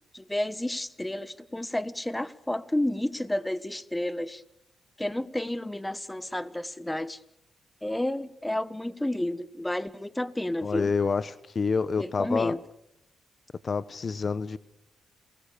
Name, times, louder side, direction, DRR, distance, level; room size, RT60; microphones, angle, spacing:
voice 1, 0.1-4.4 5.0-7.2 7.8-10.9 12.0-12.6, left 1 dB, 10° left, 16 dB, 1.2 m, -31 dB
voice 2, 10.6-12.5 13.6-14.6, left 5 dB, 45° left, 16 dB, 0.9 m, -28 dB
28.5 x 20.5 x 6.8 m, 0.80 s
cardioid pair, 70°, 0 cm